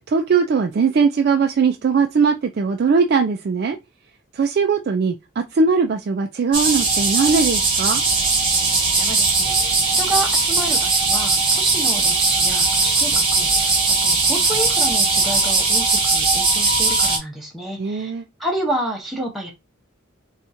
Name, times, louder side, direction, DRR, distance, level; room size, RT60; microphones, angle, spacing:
voice 1, 0.1-3.8 4.3-8.0 17.8-18.2, right 5 dB, 50° right, 0.3 m, -20 dB
sound 1, 6.5-17.2, right 3 dB, 25° right, 0.9 m, -19 dB
voice 2, 8.9-18.1 18.4-19.5, right 1 dB, ahead, 0.6 m, -29 dB
4.3 x 2.3 x 2.6 m
head